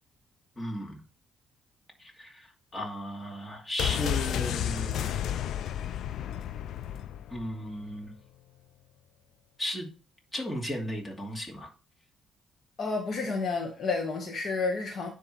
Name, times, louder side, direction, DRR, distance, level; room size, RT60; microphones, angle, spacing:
voice 1, 0.6-1.0 2.0-2.5 2.7-5.2 7.3-8.1 9.6-9.9 10.3-11.7, equal, 20° left, 0 dB, 2.6 m, -35 dB
sound 1, 3.8-7.6 7.8-7.9, left 10 dB, 75° left, 0.4 m, -32 dB
voice 2, 12.8-15.1, left 4 dB, 55° left, 1 dB, 1.6 m, -30 dB
10.0 x 3.6 x 4.5 m, 0.34 s
cardioid pair, 90°, 0 cm